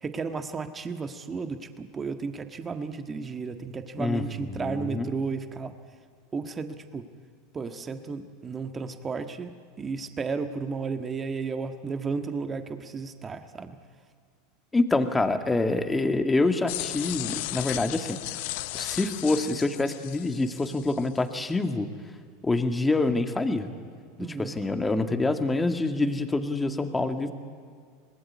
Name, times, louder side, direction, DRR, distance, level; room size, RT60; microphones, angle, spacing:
voice 1, 0.0-5.7 6.3-7.1 7.5-9.5 9.8-13.8 24.2-24.6, right 4 dB, 25° right, 8 dB, 1.6 m, -33 dB
voice 2, 4.0-5.1 14.7-18.4 18.7-21.9 22.4-23.7 24.2-27.3, left 2 dB, 15° left, 7 dB, 2.1 m, -26 dB
sound 1, 16.7-21.1, left 20 dB, 65° left, 0.7 m, -35 dB
25.0 x 20.0 x 9.6 m, 2.1 s
hypercardioid pair, 90°, 0 cm